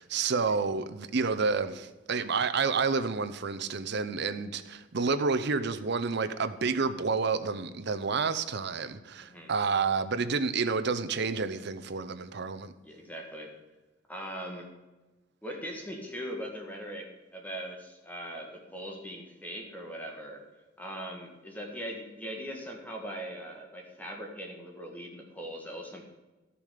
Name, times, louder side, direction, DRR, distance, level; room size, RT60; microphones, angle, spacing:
voice 1, 0.0-12.7, right 4 dB, 60° right, 0.7 m, -29 dB
voice 2, 9.2-9.5 12.8-13.5 14.1-14.7 15.4-20.4 20.8-26.1, equal, 10° left, 1.6 m, -40 dB
12.5 x 6.9 x 5.1 m
head